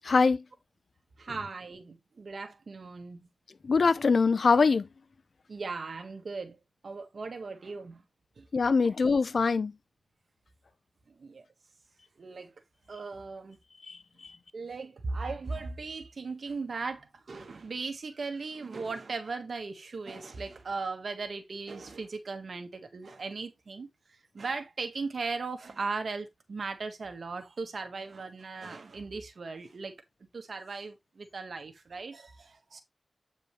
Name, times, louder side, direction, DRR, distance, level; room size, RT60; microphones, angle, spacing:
voice 1, 0.0-0.4 3.6-4.9 8.5-9.7 13.9-14.0 14.2-14.3, left 4 dB, 75° left, 0.7 m, -23 dB
voice 2, 1.2-3.3 5.5-8.0 8.4-8.5 11.1-11.5 12.2-12.5 12.9-13.6 14.5-30.0 30.3-32.8, right 4 dB, 75° right, 1.7 m, -38 dB
8.8 x 5.2 x 3.3 m
wide cardioid pair, 65°, 0 cm